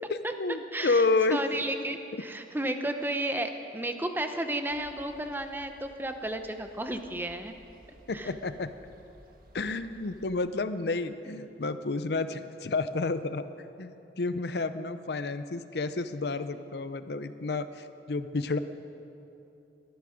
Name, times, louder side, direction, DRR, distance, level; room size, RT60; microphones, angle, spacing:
voice 1, 0.1-1.4 2.1-2.2 8.1-8.7 9.5-13.5 13.8-18.6, left 3 dB, 65° left, 12 dB, 0.6 m, -30 dB
voice 2, 0.7-7.5 8.1-8.3, right 1 dB, 10° right, 7 dB, 0.7 m, -33 dB
sound 1, 4.7-10.3, right 1 dB, 55° right, 1.5 m, -57 dB
21.0 x 10.5 x 5.1 m, 2.8 s
head